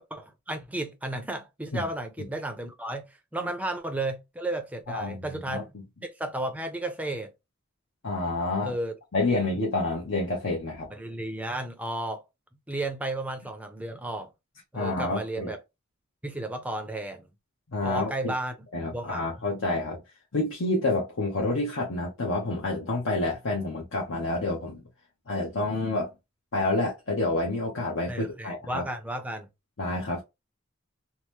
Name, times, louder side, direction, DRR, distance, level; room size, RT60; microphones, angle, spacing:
voice 1, 0.1-3.1 3.3-5.7 6.0-7.3 8.6-9.0 10.9-12.2 12.7-14.3 14.7-15.6 16.2-17.3 17.8-18.5 18.9-19.4 28.1-29.5, right 1 dB, 5° right, 0.5 m, -33 dB
voice 2, 4.9-5.2 5.5-5.6 8.0-8.7 9.1-10.9 14.7-15.5 17.7-18.3 18.7-20.0 20.3-24.8 25.3-26.1 26.5-28.8 29.8-30.2, left 2 dB, 70° left, 0.8 m, -28 dB
2.9 x 2.0 x 3.1 m
head